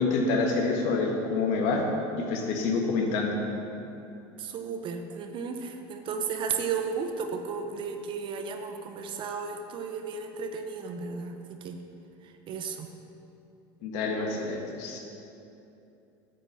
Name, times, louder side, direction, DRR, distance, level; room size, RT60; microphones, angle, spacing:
voice 1, 0.0-1.9 2.2-3.4 13.8-15.0, left 3 dB, 65° left, 1 dB, 1.4 m, -27 dB
voice 2, 4.4-11.8 12.5-12.9, right 5 dB, 45° right, 6 dB, 0.8 m, -34 dB
9.1 x 4.3 x 6.7 m, 2.8 s
supercardioid pair, 115°, 12 cm